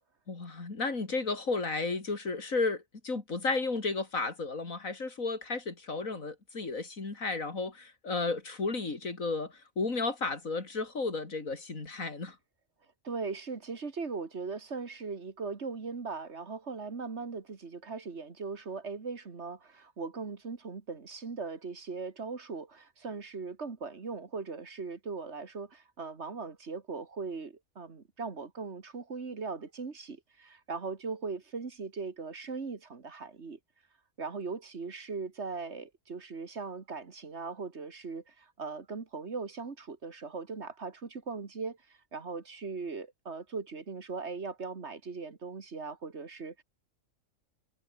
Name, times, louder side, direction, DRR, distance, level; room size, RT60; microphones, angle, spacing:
voice 1, 0.3-12.4, left 3 dB, 85° left, 3.7 m, -33 dB
voice 2, 13.0-33.6 34.2-46.6, right 4 dB, 55° right, 2.1 m, -39 dB
omnidirectional pair, 1.4 m